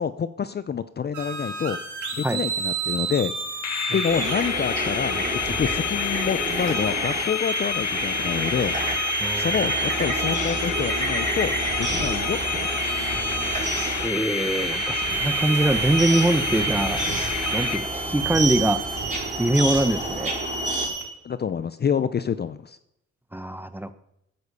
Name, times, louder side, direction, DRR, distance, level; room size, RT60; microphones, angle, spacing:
voice 1, 0.0-1.8 2.1-3.3 3.9-8.8 9.4-13.0 21.2-22.8, left 7 dB, 35° left, 14 dB, 0.6 m, -27 dB
sound 1, 1.1-21.0, right 4 dB, 80° right, 4.1 m, -31 dB
sound 2, 3.6-18.3, left 9 dB, 65° left, 1.4 m, -30 dB
sound 3, 4.1-20.9, right 2 dB, 25° right, 4.9 m, -31 dB
voice 2, 9.2-9.6 14.0-17.0 17.5-18.8 19.4-20.3 23.3-23.9, right 1 dB, 5° right, 12 dB, 1.0 m, -23 dB
15.0 x 9.7 x 5.5 m, 0.79 s
cardioid pair, 90°, 30 cm